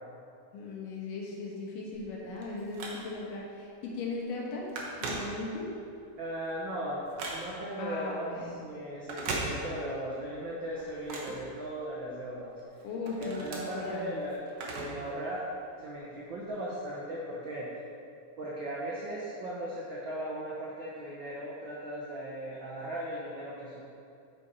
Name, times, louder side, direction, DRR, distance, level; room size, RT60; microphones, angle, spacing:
voice 1, 0.5-4.7 5.0-5.7 7.8-8.6 12.8-14.1, left 3 dB, 90° left, -3 dB, 3.0 m, -38 dB
Telephone, 1.9-3.4 3.9-4.1 4.3-5.8 6.2-7.8 8.9-10.1 10.4-12.1 12.6-15.1 15.4-15.5 16.4-16.5, right 3 dB, 60° right, 1.8 m, -39 dB
voice 2, 6.2-8.3 8.6-12.6 13.2-15.5 15.8-17.7 18.4-23.8, right 1 dB, 85° right, -6 dB, 1.0 m, -37 dB
8.9 x 6.2 x 4.2 m, 2.5 s
omnidirectional pair, 3.7 m